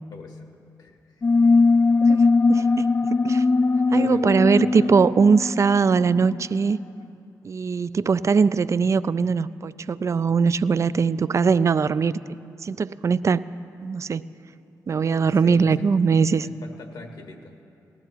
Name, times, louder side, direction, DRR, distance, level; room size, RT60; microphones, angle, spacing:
voice 1, 0.1-0.5 0.8-1.2 2.5-2.8 3.9-4.9 15.4-15.9 16.4-17.6, left 3 dB, 70° left, 3 dB, 1.6 m, -41 dB
sound 1, 1.2-6.4, left 3 dB, 35° left, 0.4 m, -20 dB
voice 2, 2.1-3.4 3.9-6.8 7.4-12.1 12.6-13.4 13.8-14.2 14.9-16.5, right 5 dB, 45° right, 16 dB, 0.3 m, -21 dB
19.0 x 14.0 x 3.0 m, 2.6 s
cardioid pair, 55°, 7 cm